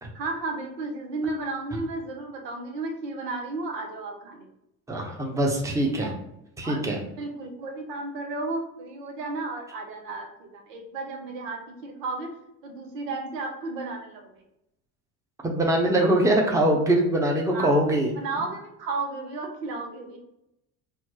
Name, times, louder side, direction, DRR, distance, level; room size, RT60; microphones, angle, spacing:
voice 1, 0.1-4.5 5.8-6.2 6.6-6.8 7.2-12.3 12.6-14.4 17.5-17.8 18.2-20.2, right 3 dB, 85° right, 2 dB, 0.7 m, -33 dB
voice 2, 4.9-6.1 6.6-7.0 15.4-18.1, right 1 dB, 5° right, 0 dB, 0.7 m, -23 dB
4.3 x 2.0 x 2.8 m, 0.82 s
hypercardioid pair, 65°, 47 cm